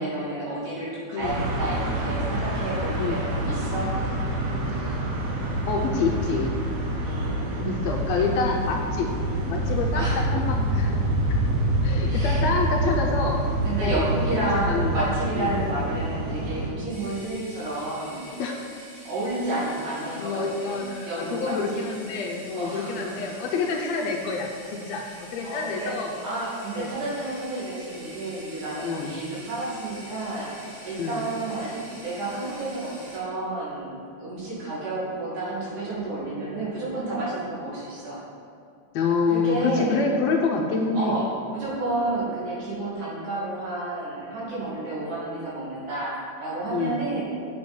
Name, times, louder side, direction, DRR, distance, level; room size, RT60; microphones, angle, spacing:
voice 1, 0.0-3.9 7.0-7.9 9.9-10.2 12.0-12.7 13.6-18.3 19.0-21.9 22.5-23.3 25.4-25.9 26.2-38.2 39.3-40.0 40.9-46.1 46.4-47.2, right 2 dB, 85° right, -8 dB, 4.0 m, -31 dB
sound 1, 1.2-16.7, right 1 dB, 70° right, 2.4 m, -26 dB
voice 2, 5.7-6.5 7.6-9.1 9.5-11.0 11.8-13.4 13.8-14.1 14.7-15.6 18.4-18.6 20.2-25.1 25.3-26.1 26.7-26.9 28.8-29.1 31.0-31.2 38.9-41.1 46.7-47.0, left 4 dB, 75° left, 1 dB, 1.7 m, -27 dB
sound 2, 16.9-33.2, equal, 35° right, 2.2 m, -46 dB
7.8 x 7.7 x 4.3 m, 2.4 s
omnidirectional pair, 3.5 m